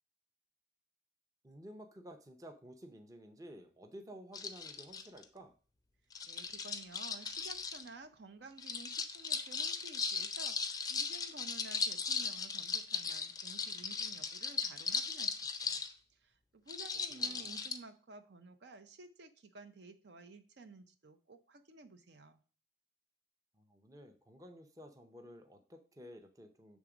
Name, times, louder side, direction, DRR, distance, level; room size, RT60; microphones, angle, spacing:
voice 1, 1.4-5.5 17.1-17.6 23.5-26.8, equal, 20° right, 5 dB, 0.7 m, -53 dB
sound 1, 4.3-5.2 6.1-7.9 8.6-15.9 16.7-17.8, left 5 dB, 20° left, 0.5 m, -38 dB
voice 2, 6.2-15.8 16.1-22.4, right 3 dB, 60° right, 8 dB, 0.6 m, -54 dB
7.3 x 3.6 x 4.9 m, 0.39 s
head